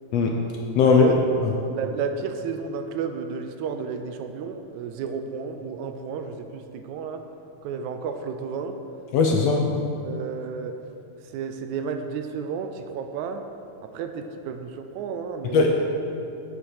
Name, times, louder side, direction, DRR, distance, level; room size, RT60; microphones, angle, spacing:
voice 1, 0.9-1.4 1.8-7.2 7.6-8.8 10.0-10.8 11.2-13.4 13.8-15.7, right 6 dB, 80° right, 7 dB, 1.9 m, -32 dB
voice 2, 9.1-9.7 15.5-15.7, left 5 dB, 70° left, 1 dB, 1.6 m, -18 dB
8.1 x 7.7 x 6.5 m, 2.7 s
omnidirectional pair, 3.5 m